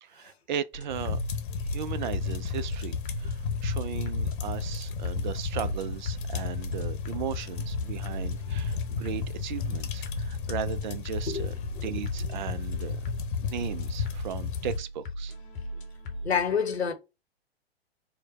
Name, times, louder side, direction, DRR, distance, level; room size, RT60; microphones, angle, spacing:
voice 1, 0.0-1.2 1.5-11.5 11.8-13.0 13.4-15.3, right 9 dB, 50° right, 0.5 m, -37 dB
sound 1, 0.7-16.4, equal, 25° left, 0.9 m, -38 dB
sound 2, 0.9-14.8, left 5 dB, 55° left, 0.9 m, -33 dB
voice 2, 16.2-16.9, left 6 dB, 85° left, 1.0 m, -27 dB
4.9 x 2.2 x 3.0 m
figure-of-eight pair, 105°, 31 cm